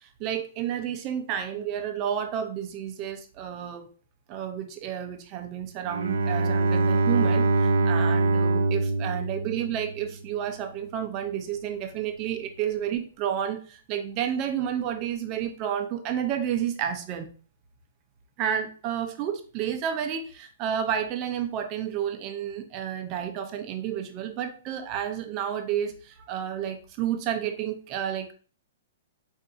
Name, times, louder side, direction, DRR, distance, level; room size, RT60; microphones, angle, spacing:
voice 1, 0.0-3.9 4.3-17.3 18.4-28.3, right 9 dB, 30° right, 6 dB, 0.5 m, -31 dB
Bowed string instrument, 5.9-10.2, right 3 dB, 85° right, 0.5 m, -24 dB
4.6 x 2.6 x 2.5 m, 0.39 s
hypercardioid pair, 160°, 0 cm